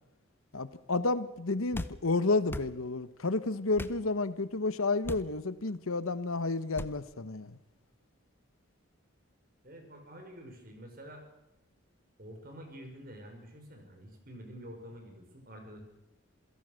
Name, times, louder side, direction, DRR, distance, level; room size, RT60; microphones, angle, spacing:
voice 1, 0.5-7.6, left 3 dB, 85° left, 1.1 m, -31 dB
sound 1, 1.7-2.0 2.5-2.7 3.8-4.0 5.0-5.3 6.8-7.0, left 1 dB, 10° left, 0.7 m, -38 dB
voice 2, 9.6-11.2 12.2-15.8, equal, 45° right, 5.2 m, -48 dB
27.5 x 17.0 x 6.5 m
head